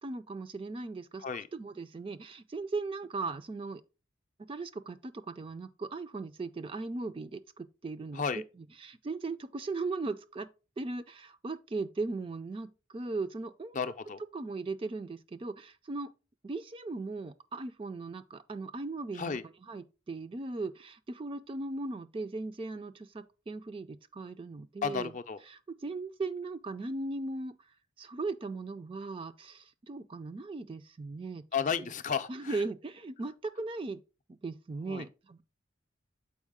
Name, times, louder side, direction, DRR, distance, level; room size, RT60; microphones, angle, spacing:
voice 1, 0.0-1.2 1.5-3.8 4.4-10.5 10.8-13.8 14.3-16.1 16.4-19.4 19.7-25.1 25.5-27.5 28.0-31.5 31.8-31.9 32.3-34.0 34.3-35.4, right 3 dB, 25° right, 0.3 m, -38 dB
voice 2, 13.7-14.2 19.2-19.4 24.8-25.4 31.5-32.6 34.9-35.0, left 6 dB, 40° left, 0.4 m, -33 dB
7.2 x 4.6 x 3.6 m
head